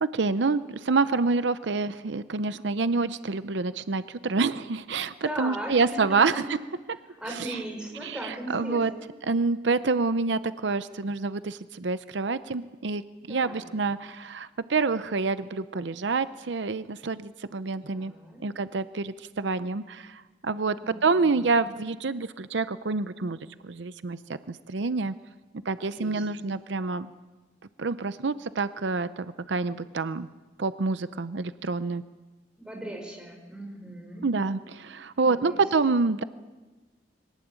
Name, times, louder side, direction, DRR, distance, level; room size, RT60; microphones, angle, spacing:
voice 1, 0.0-6.6 7.3-7.6 8.0-8.9 9.2-13.0 13.3-18.1 18.4-23.4 23.6-24.2 24.5-25.1 25.7-27.1 27.8-30.3 30.6-32.0 34.2-36.2, right 4 dB, 75° right, 13 dB, 0.7 m, -27 dB
voice 2, 5.2-5.8 6.1-6.4 7.1-9.1 13.3-13.7 17.8-18.4 20.7-21.5 25.8-26.4 32.6-34.3 35.2-35.9, right 1 dB, 5° right, 0 dB, 5.2 m, -38 dB
23.0 x 19.0 x 8.9 m, 1.3 s
head